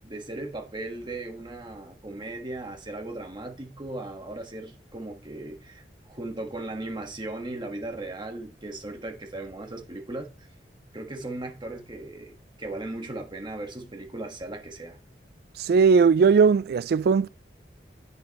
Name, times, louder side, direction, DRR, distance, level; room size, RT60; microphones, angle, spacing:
voice 1, 0.0-10.3 10.9-15.0, right 2 dB, 25° right, 1.6 m, -37 dB
voice 2, 15.6-17.3, right 5 dB, 60° right, 0.3 m, -19 dB
9.4 x 7.0 x 3.1 m
head